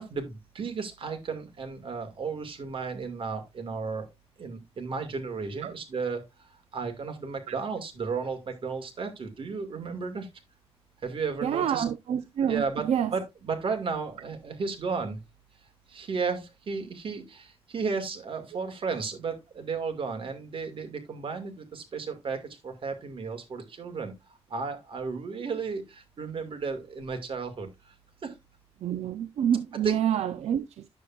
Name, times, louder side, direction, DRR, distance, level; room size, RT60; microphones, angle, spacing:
voice 1, 0.0-4.1 4.4-10.3 11.0-11.8 12.5-15.2 15.9-27.9 28.2-28.4 29.8-30.0, right 5 dB, 55° right, 2.1 m, -34 dB
voice 2, 11.4-13.1 28.8-30.9, right 9 dB, 80° right, 0.5 m, -28 dB
9.6 x 7.1 x 2.5 m
cardioid pair, 100°, 11 cm